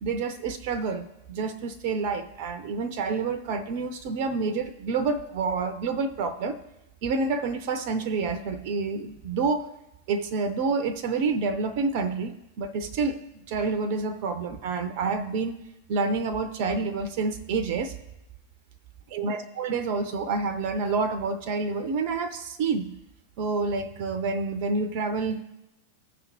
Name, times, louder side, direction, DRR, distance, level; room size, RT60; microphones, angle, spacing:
voice 1, 0.0-6.6 7.0-9.7 10.1-13.2 13.5-15.6 15.9-17.9 19.1-23.0 23.4-25.4, right 4 dB, 50° right, 12 dB, 0.6 m, -28 dB
15.5 x 5.1 x 3.0 m, 0.91 s
figure-of-eight pair, 90°, 0 cm